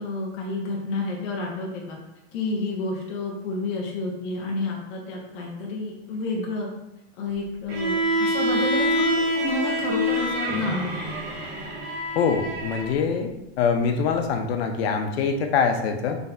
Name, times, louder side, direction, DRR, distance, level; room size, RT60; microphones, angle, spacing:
voice 1, 0.0-2.0 2.3-6.7 7.2-11.1, left 2 dB, 20° left, -3 dB, 0.3 m, -30 dB
Bowed string instrument, 7.7-12.9, equal, 70° right, 1.4 m, -26 dB
voice 2, 12.2-13.3 13.6-16.2, left 6 dB, 65° left, 5 dB, 0.6 m, -24 dB
4.1 x 3.3 x 2.5 m, 0.91 s
supercardioid pair, 170°, 34 cm